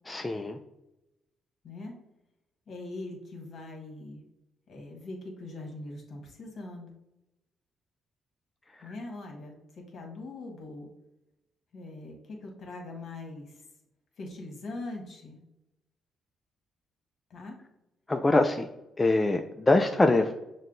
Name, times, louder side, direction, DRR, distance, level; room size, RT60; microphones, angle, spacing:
voice 1, 0.1-0.6 8.7-8.9 18.1-18.7 19.0-20.3, left 2 dB, 20° left, 5 dB, 0.3 m, -24 dB
voice 2, 1.6-1.9 2.7-4.2 4.7-7.0 8.8-10.9 11.7-13.6 14.2-15.4 17.3-17.6, left 2 dB, 55° left, 1 dB, 1.3 m, -42 dB
6.2 x 2.2 x 3.8 m, 0.90 s
cardioid pair, 90°, 0 cm